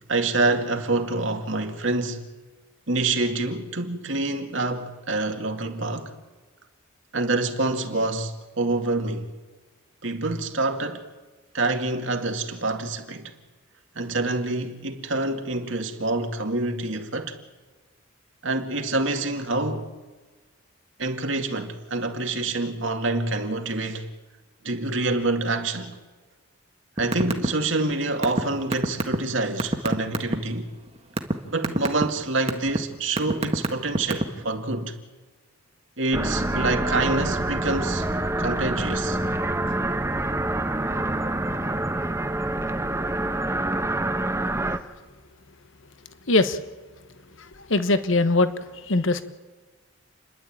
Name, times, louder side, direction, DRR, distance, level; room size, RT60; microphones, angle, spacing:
voice 1, 0.1-2.2 2.9-6.1 7.1-9.3 10.0-11.1 11.5-13.3 14.0-17.4 18.4-19.9 21.0-24.1 24.6-26.0 27.0-30.7 31.5-34.9 36.0-38.1 38.4-39.2, right 2 dB, 65° right, 2.3 m, -26 dB
sound 1, 27.0-27.5 27.7-30.3 30.9-31.3 31.6-32.0 32.5-32.8 33.2-34.4, right 1 dB, 30° right, 1.6 m, -23 dB
sound 2, 36.1-44.8, right 1 dB, 15° right, 1.0 m, -26 dB
voice 2, 46.3-46.6 47.4-49.2, left 2 dB, 65° left, 1.2 m, -22 dB
30.0 x 11.5 x 8.8 m
head